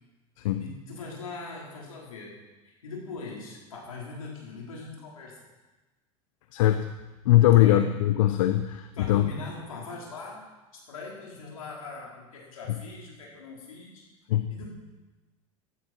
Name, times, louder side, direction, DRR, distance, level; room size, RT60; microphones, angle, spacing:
voice 1, 0.6-2.3 2.7-5.4 7.5-7.8 8.9-10.4 10.9-14.0 14.5-14.7, left 3 dB, 90° left, -3 dB, 4.8 m, -41 dB
voice 2, 6.5-6.9 7.2-9.3 14.3-14.5, left 13 dB, 75° left, 9 dB, 0.9 m, -21 dB
16.5 x 12.5 x 4.6 m, 1.2 s
hypercardioid pair, 90°, 17 cm